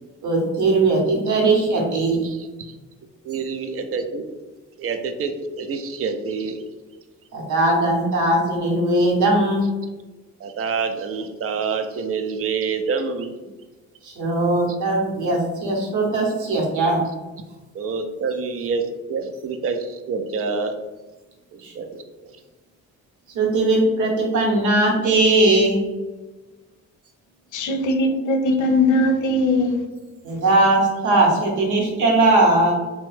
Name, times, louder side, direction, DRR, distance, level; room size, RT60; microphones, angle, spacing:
voice 1, 0.2-2.2 7.3-9.7 14.0-17.0 21.6-21.7 23.3-25.8 30.2-32.7, right 2 dB, 80° right, -1 dB, 0.9 m, -19 dB
voice 2, 2.2-2.7 3.2-4.2 4.8-6.6 10.4-13.3 17.7-18.8 19.1-20.8 21.5-22.0, right 5 dB, 50° right, 7 dB, 0.4 m, -27 dB
voice 3, 27.5-29.8, left 1 dB, 75° left, 5 dB, 0.5 m, -20 dB
2.9 x 2.2 x 3.1 m, 1.2 s
cardioid pair, 90°, 30 cm